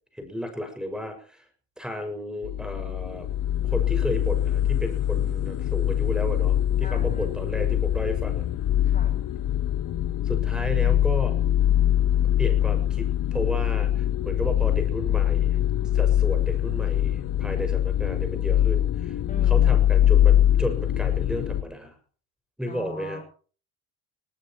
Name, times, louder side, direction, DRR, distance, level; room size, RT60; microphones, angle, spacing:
voice 1, 0.2-1.4 1.8-3.3 3.6-8.5 10.2-11.3 12.4-15.6 15.9-19.1 19.5-21.9 22.6-23.2, equal, ahead, 6 dB, 6.1 m, -33 dB
sound 1, 2.4-21.6, left 11 dB, 50° left, 1.2 m, -23 dB
voice 2, 6.8-7.3 8.8-9.2 19.3-19.9 22.7-23.2, left 3 dB, 20° left, 4 dB, 7.8 m, -40 dB
21.0 x 18.5 x 3.0 m, 0.41 s
cardioid pair, 135°, 42 cm